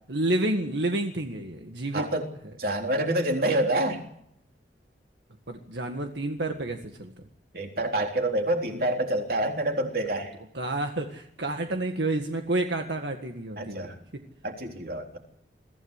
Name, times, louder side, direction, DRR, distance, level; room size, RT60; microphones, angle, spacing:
voice 1, 0.1-2.1 5.5-7.1 10.5-13.9, right 2 dB, 80° right, 4 dB, 1.8 m, -29 dB
voice 2, 1.9-2.3 2.6-4.0 7.5-10.3 13.6-14.0 14.4-15.2, right 1 dB, 55° right, 3 dB, 3.7 m, -27 dB
23.0 x 16.0 x 8.3 m, 0.75 s
head